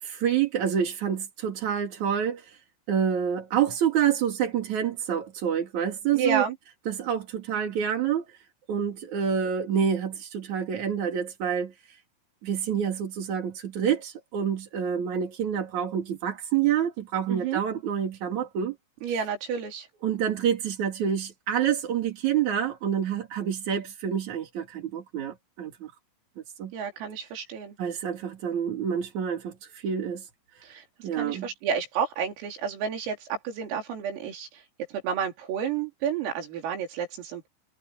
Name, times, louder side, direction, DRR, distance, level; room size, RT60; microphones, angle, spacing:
voice 1, 0.0-2.6 2.9-6.4 6.9-8.2 8.7-11.7 12.4-18.7 20.0-25.9 26.6-26.7 27.8-30.3 30.6-30.7 31.0-31.5, right 8 dB, 50° right, 2.8 m, -27 dB
voice 2, 6.1-6.6 17.3-17.6 19.0-19.9 26.7-27.8 30.6-30.8 31.2-34.5 35.0-37.5, right 7 dB, 90° right, 6.9 m, -30 dB
omnidirectional pair, 5.8 m